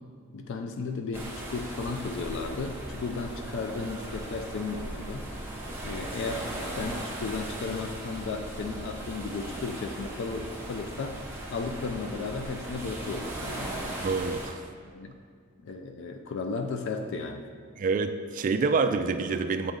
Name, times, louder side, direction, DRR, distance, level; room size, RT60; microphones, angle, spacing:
voice 1, 0.3-5.3 5.8-11.2 11.5-13.7 14.9-15.2 15.6-17.5, left 4 dB, 60° left, 5 dB, 0.4 m, -34 dB
sound 1, 1.1-14.5, right 1 dB, 10° right, 0.9 m, -38 dB
voice 2, 14.0-14.6 17.8-19.7, right 4 dB, 40° right, 8 dB, 0.3 m, -27 dB
7.6 x 4.0 x 3.7 m, 2.2 s
head